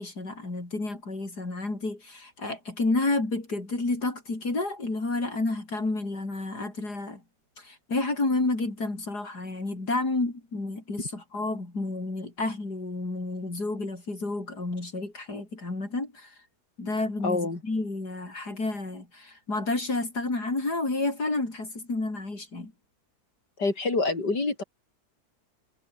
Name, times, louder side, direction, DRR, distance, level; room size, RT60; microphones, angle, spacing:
voice 1, 0.0-7.2 7.6-16.3 16.8-22.7, left 2 dB, 70° left, 6.1 m, -30 dB
voice 2, 17.2-17.6 23.6-24.6, left 3 dB, 90° left, 5.4 m, -26 dB
omnidirectional pair, 1.8 m